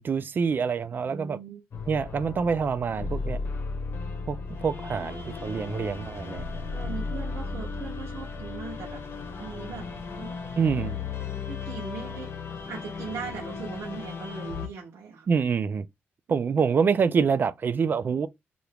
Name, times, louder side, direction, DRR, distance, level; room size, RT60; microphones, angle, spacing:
voice 1, 0.0-1.4 1.9-3.4 4.3-6.4 10.6-11.0 15.3-15.9 16.3-18.3, right 6 dB, 45° right, 0.4 m, -26 dB
voice 2, 1.1-1.6 6.7-9.0 9.4-9.9 10.2-10.5 11.5-12.3 12.7-15.3 16.3-16.6, right 5 dB, 85° right, 0.8 m, -39 dB
sound 1, 1.7-14.7, left 4 dB, 60° left, 0.9 m, -35 dB
2.8 x 2.5 x 3.4 m
cardioid pair, 100°, 5 cm